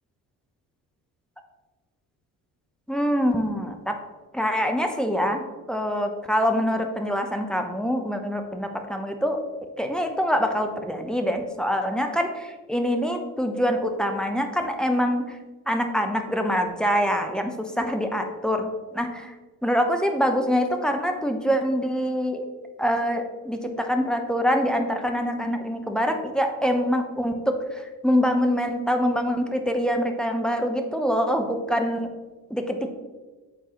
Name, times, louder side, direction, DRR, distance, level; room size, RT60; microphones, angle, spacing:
voice 1, 2.9-4.0 4.3-9.4 9.8-15.4 15.7-19.3 19.6-22.4 22.8-32.1 32.5-32.9, equal, ahead, 4 dB, 0.8 m, -25 dB
8.3 x 3.8 x 3.1 m, 1.3 s
hypercardioid pair, 45°, 44 cm